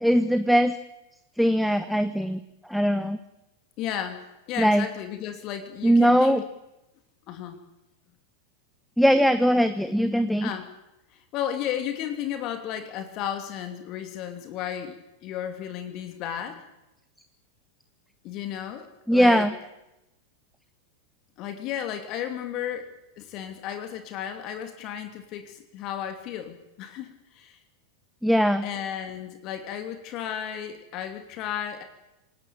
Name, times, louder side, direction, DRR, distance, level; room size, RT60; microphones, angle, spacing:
voice 1, 0.0-0.8 1.4-2.4 2.7-3.2 4.6-4.8 5.8-6.4 9.0-10.5 19.1-19.5 28.2-28.6, equal, ahead, 11 dB, 1.1 m, -20 dB
voice 2, 3.8-6.4 7.3-7.6 10.4-10.6 11.1-16.6 18.2-19.5 21.4-22.9 23.2-27.6 28.6-31.8, left 10 dB, 40° left, 7 dB, 2.8 m, -34 dB
27.5 x 18.0 x 8.8 m, 0.94 s
figure-of-eight pair, 90°, 0 cm